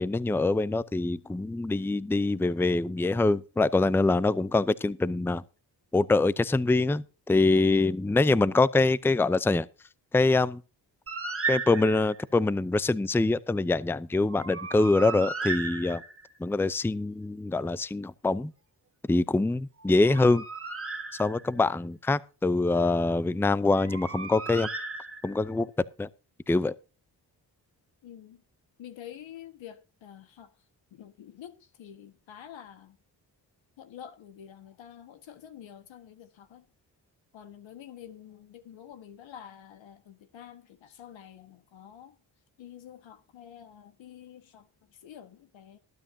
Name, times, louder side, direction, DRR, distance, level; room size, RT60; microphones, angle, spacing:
voice 1, 0.0-5.4 5.9-9.7 10.1-10.6 11.5-16.0 16.4-18.5 19.1-20.4 21.2-24.7 25.2-25.7 26.0-26.1 26.5-26.7, left 3 dB, 5° left, 0.5 m, -24 dB
Bird, 11.1-12.2 14.3-16.4 19.8-21.7 23.6-25.5, right 4 dB, 30° right, 1.7 m, -35 dB
voice 2, 28.0-28.4 28.8-30.5 30.9-33.0 33.8-36.7 37.3-42.2 42.6-45.8, left 10 dB, 85° left, 1.6 m, -48 dB
20.0 x 9.0 x 2.7 m
cardioid pair, 70°, 44 cm